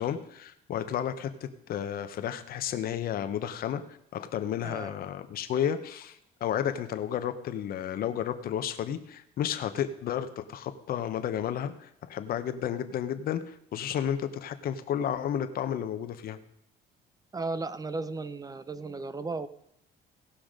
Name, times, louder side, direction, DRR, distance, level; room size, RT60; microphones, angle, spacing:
voice 1, 0.0-3.8 4.1-16.4, left 9 dB, 60° left, 9 dB, 1.1 m, -32 dB
voice 2, 17.3-19.5, right 3 dB, 20° right, 14 dB, 0.6 m, -35 dB
17.5 x 5.8 x 5.1 m, 0.77 s
cardioid pair, 110°, 17 cm